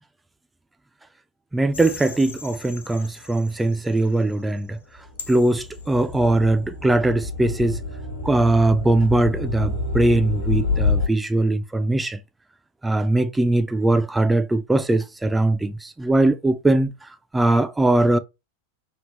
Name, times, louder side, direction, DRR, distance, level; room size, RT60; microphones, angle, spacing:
voice 1, 1.5-4.8 5.3-7.8 8.2-12.2 12.8-16.9 17.3-18.2, right 2 dB, 10° right, 0.3 m, -20 dB
sound 1, 1.7-4.1 4.9-11.1, left 3 dB, 75° left, 1.3 m, -29 dB
3.3 x 2.5 x 3.2 m
figure-of-eight pair, 90°, 0 cm